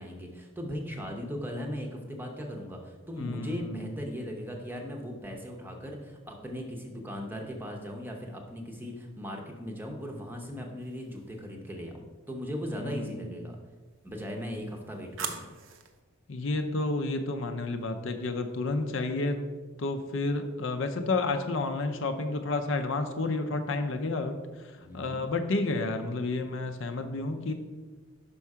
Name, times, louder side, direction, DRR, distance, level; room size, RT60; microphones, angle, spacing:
voice 1, 0.0-13.6 14.0-15.4 24.8-25.2, equal, 10° right, 1 dB, 0.7 m, -38 dB
voice 2, 3.2-3.9 12.8-13.4 16.3-19.4 19.8-27.5, left 3 dB, 60° left, 7 dB, 0.5 m, -31 dB
sound 1, 10.8-11.5 13.9-16.0, right 6 dB, 60° right, 0.7 m, -42 dB
5.6 x 5.4 x 4.7 m, 1.3 s
head